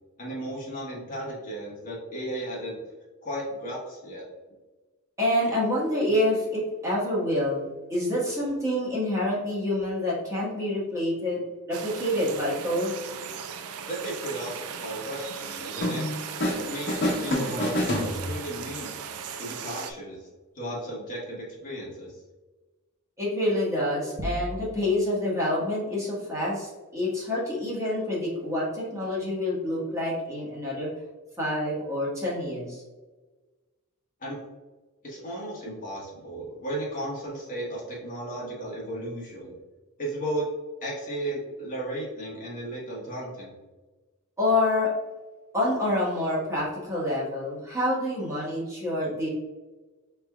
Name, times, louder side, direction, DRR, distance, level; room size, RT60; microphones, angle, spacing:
voice 1, 0.2-2.8 3.2-4.2 13.9-16.0 16.5-18.9 19.4-20.3 20.5-22.1 34.2-34.4 35.0-39.6 40.0-40.5 40.8-43.5, right 1 dB, 40° left, -4 dB, 1.2 m, -35 dB
voice 2, 5.2-11.4 11.7-12.9 23.2-30.9 31.4-32.8 44.4-44.9 45.5-49.3, left 1 dB, 15° right, -6 dB, 1.3 m, -27 dB
sound 1, 11.7-19.9, right 7 dB, 85° right, 0.4 m, -38 dB
sound 2, 15.8-16.6 16.9-18.6, left 1 dB, 60° left, 1.4 m, -27 dB
sound 3, 24.2-25.2, equal, 35° right, 0.5 m, -35 dB
5.1 x 3.4 x 2.3 m, 1.2 s
head